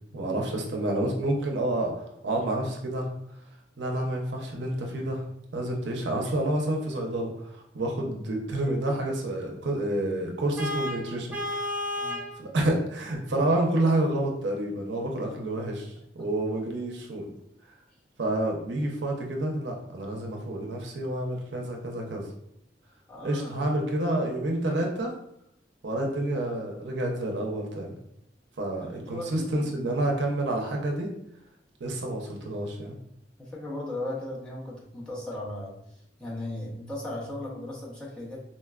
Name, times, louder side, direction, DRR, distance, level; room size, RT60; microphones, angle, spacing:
voice 1, 0.1-3.1 3.8-5.2 5.5-11.9 12.4-17.3 18.2-22.3 23.2-25.1 25.8-27.9 28.6-31.1 31.8-33.0, right 1 dB, 75° right, 1 dB, 0.6 m, -29 dB
Vehicle horn car horn honking, 10.6-12.3, left 1 dB, 10° right, 0.4 m, -32 dB
voice 2, 23.1-23.7 26.0-26.2 28.8-30.0 33.4-35.8 36.2-38.4, left 1 dB, 5° left, -6 dB, 0.8 m, -37 dB
3.9 x 2.2 x 2.3 m, 0.76 s
head